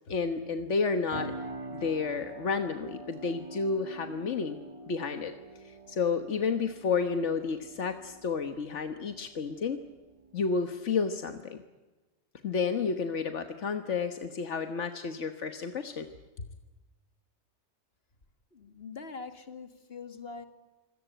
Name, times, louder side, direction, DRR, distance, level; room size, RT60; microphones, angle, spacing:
voice 1, 0.1-1.3 1.7-4.6 4.9-5.3 5.6-9.8 10.3-11.6 12.4-16.1, left 5 dB, 85° left, 8 dB, 1.6 m, -31 dB
sound 1, 1.1-10.8, right 2 dB, 30° right, 1.4 m, -46 dB
voice 2, 18.5-20.5, left 4 dB, 60° left, 8 dB, 2.3 m, -43 dB
25.5 x 18.0 x 9.1 m, 1.2 s
omnidirectional pair, 1.2 m